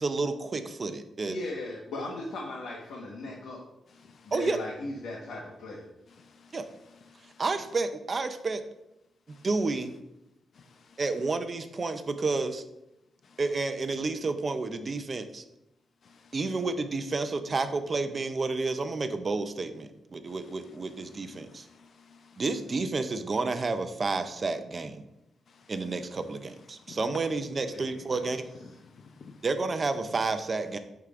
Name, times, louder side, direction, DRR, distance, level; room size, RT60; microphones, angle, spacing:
voice 1, 0.0-1.4 4.3-4.6 6.5-6.7 7.4-8.6 9.4-9.9 11.0-12.6 13.4-15.4 16.3-21.7 22.4-25.0 25.7-28.4 29.4-30.8, right 3 dB, 30° right, 0.5 m, -30 dB
voice 2, 1.3-3.6 4.2-5.8 27.7-28.4, left 2 dB, 85° left, 1.3 m, -38 dB
voice 3, 3.9-4.3 6.1-6.5 7.1-7.3 10.6-10.7 13.3-13.4 16.0-16.3 21.4-22.4 25.5-25.6 26.9-27.0 28.9-29.4, left 5 dB, 45° left, 0.6 m, -54 dB
12.5 x 4.7 x 2.5 m
wide cardioid pair, 165°, 0 cm